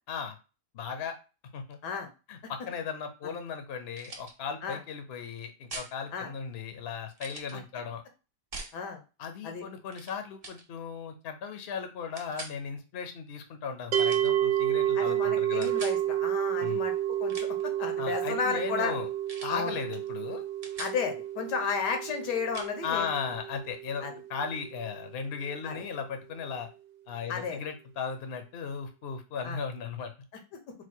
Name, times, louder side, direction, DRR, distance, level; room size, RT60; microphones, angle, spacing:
voice 1, 0.7-1.2 1.5-1.8 2.3-8.0 9.2-15.7 16.6-16.8 18.0-19.1 19.4-20.4 22.8-26.7 27.1-30.1, left 6 dB, 55° left, 7 dB, 0.7 m, -36 dB
sound 1, 3.9-4.3 5.7-5.9 7.2-7.5 8.5-8.8 9.9-10.1 10.4-10.6 12.2-12.6 13.9-14.3 15.6-16.0 17.1-17.7 19.3-19.6 19.9-20.1 20.4-21.0 22.5-22.7, right 3 dB, 35° right, 0.6 m, -42 dB
sound 2, 13.9-25.1, right 12 dB, 70° right, 1.0 m, -30 dB
voice 2, 14.9-16.9 17.2-18.9 19.5-19.8 20.8-23.1 24.0-24.1 25.6-25.8 27.3-27.6 29.4-29.6, left 5 dB, 90° left, 5 dB, 1.5 m, -33 dB
4.5 x 2.2 x 4.4 m, 0.32 s
omnidirectional pair, 1.8 m